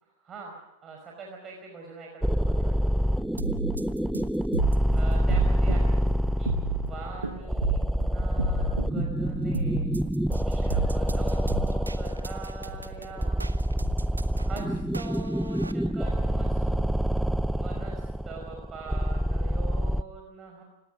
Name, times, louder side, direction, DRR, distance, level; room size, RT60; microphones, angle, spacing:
voice 1, 0.2-3.1 4.9-6.0 6.4-6.5 6.8-10.0 10.5-13.6 14.4-16.9 17.5-20.6, right 3 dB, 25° right, 0 dB, 5.2 m, -43 dB
sound 1, 2.2-20.0, equal, ahead, 0.6 m, -27 dB
sound 2, 3.4-15.7, right 3 dB, 80° right, 1.3 m, -33 dB
29.0 x 17.5 x 6.3 m, 1.0 s
figure-of-eight pair, 90°, 0 cm